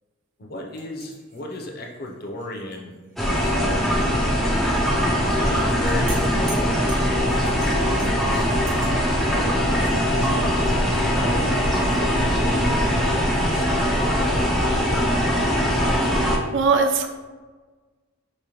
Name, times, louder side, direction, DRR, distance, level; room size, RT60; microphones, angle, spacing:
voice 1, 0.4-2.9 3.2-4.9 5.2-8.8 9.3-15.0, left 1 dB, 50° left, 1 dB, 0.6 m, -35 dB
sound 1, 0.8-3.5 3.8-3.9 5.3-8.9, right 2 dB, 35° right, 0.8 m, -43 dB
sound 2, 3.2-16.4, equal, ahead, 0.4 m, -21 dB
voice 2, 16.5-17.1, right 4 dB, 60° right, 5 dB, 0.4 m, -19 dB
5.0 x 2.1 x 2.9 m, 1.3 s
head